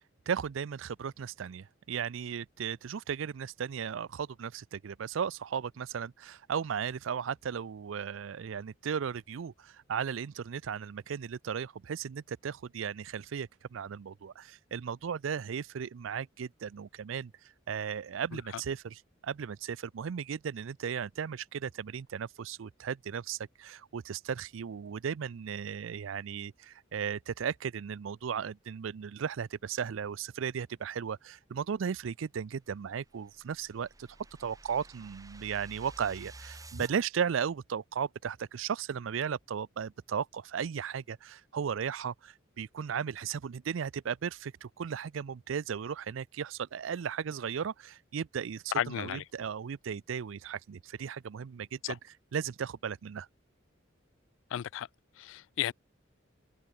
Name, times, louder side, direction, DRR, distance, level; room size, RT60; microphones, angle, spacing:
voice 1, 0.3-17.3 17.7-34.1 34.4-53.3, right 7 dB, 80° right, 0.4 m, -36 dB
sound 1, 32.9-36.9, right 2 dB, 20° right, 1.6 m, -49 dB
voice 2, 48.8-49.2 51.8-51.9 54.5-54.9 55.2-55.7, left 10 dB, 70° left, 0.3 m, -33 dB
head